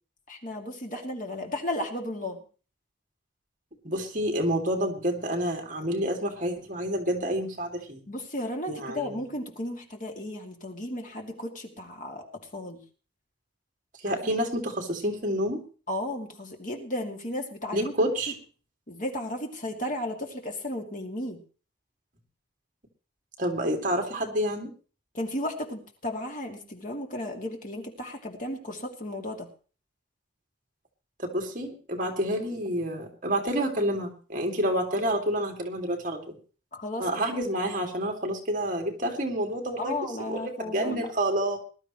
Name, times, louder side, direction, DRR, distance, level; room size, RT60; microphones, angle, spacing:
voice 1, 0.3-2.4 8.1-12.2 12.5-12.8 14.1-14.3 15.9-17.9 18.9-21.4 25.1-29.5 36.7-37.1 39.8-41.1, left 1 dB, 45° left, 2 dB, 2.5 m, -34 dB
voice 2, 3.8-8.0 8.7-9.2 14.0-15.6 17.7-18.3 23.4-24.7 31.2-36.2 37.0-41.6, equal, 45° right, 3 dB, 2.4 m, -28 dB
20.5 x 12.0 x 3.1 m, 0.37 s
head